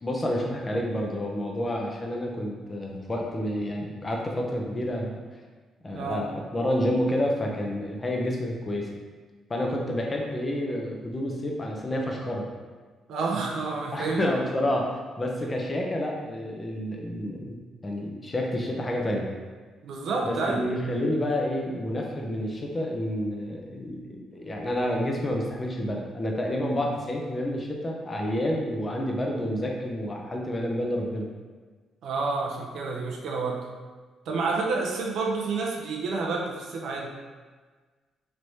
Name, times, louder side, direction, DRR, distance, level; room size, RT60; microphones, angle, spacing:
voice 1, 0.0-5.2 5.8-8.9 9.5-12.5 13.9-14.9 15.2-17.6 17.8-19.3 20.2-31.3, left 1 dB, 25° left, 0 dB, 0.6 m, -29 dB
voice 2, 13.1-14.3 19.8-20.6 32.0-33.7 34.3-37.1, right 4 dB, 75° right, 0 dB, 0.5 m, -29 dB
3.2 x 3.1 x 2.7 m, 1.4 s
cardioid pair, 90°, 0 cm